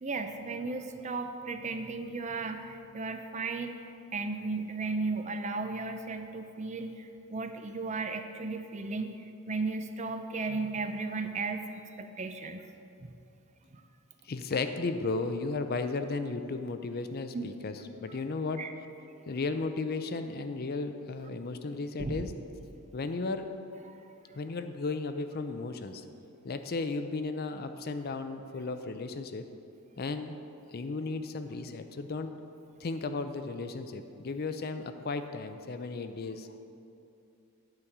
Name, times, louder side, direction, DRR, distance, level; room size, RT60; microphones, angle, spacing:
voice 1, 0.0-3.8 4.1-9.1 9.5-12.6 13.7-13.8 17.3-17.5 18.6-18.7 22.0-22.2 23.9-24.0, right 3 dB, 30° right, 7 dB, 0.5 m, -35 dB
voice 2, 14.2-18.6 19.3-22.3 22.9-23.5 24.4-26.0 26.4-29.4 30.0-30.3 30.7-32.3 32.8-36.5, left 3 dB, 45° left, 9 dB, 0.5 m, -34 dB
9.6 x 5.1 x 7.2 m, 2.6 s
head